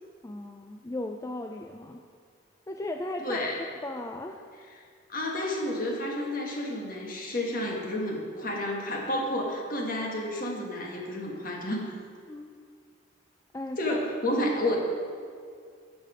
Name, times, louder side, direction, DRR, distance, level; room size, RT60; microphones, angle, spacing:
voice 1, 0.2-2.0 2.7-3.5 3.8-4.4 12.3-12.6 13.5-14.0 14.3-14.4, left 1 dB, 15° left, 3 dB, 0.3 m, -36 dB
voice 2, 3.2-3.6 5.1-11.9 13.8-14.8, left 1 dB, 45° left, 0 dB, 1.5 m, -30 dB
11.0 x 6.7 x 5.0 m, 2.1 s
head